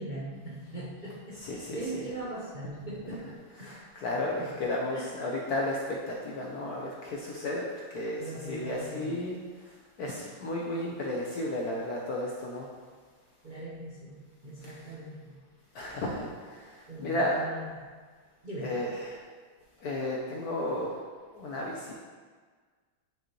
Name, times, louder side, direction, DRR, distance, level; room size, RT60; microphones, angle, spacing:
voice 1, 0.0-3.3 3.6-3.8 4.1-4.5 4.9-5.1 8.2-9.1 13.4-15.4 16.9-17.6 18.4-18.7, right 2 dB, 40° right, -7 dB, 0.6 m, -40 dB
voice 2, 1.3-2.1 3.6-7.6 7.9-12.7 14.6-14.9 15.7-17.5 18.6-19.2 19.8-21.0 21.3-21.9, left 1 dB, 65° left, -3 dB, 1.0 m, -33 dB
9.1 x 5.2 x 3.1 m, 1.5 s
omnidirectional pair, 2.4 m